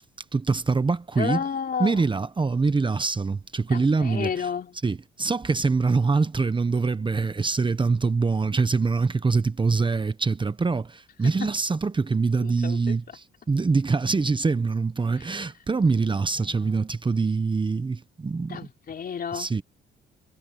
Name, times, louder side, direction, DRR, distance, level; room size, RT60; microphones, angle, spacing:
voice 1, 0.3-1.5 1.8-4.5 4.8-18.6 19.3-19.6, right 4 dB, 25° right, 1.1 m, -24 dB
voice 2, 1.2-2.0 3.7-4.8 11.4-11.5 12.4-13.0 16.4-16.8 18.5-19.5, left 7 dB, 50° left, 3.6 m, -31 dB
cardioid pair, 90°, 20 cm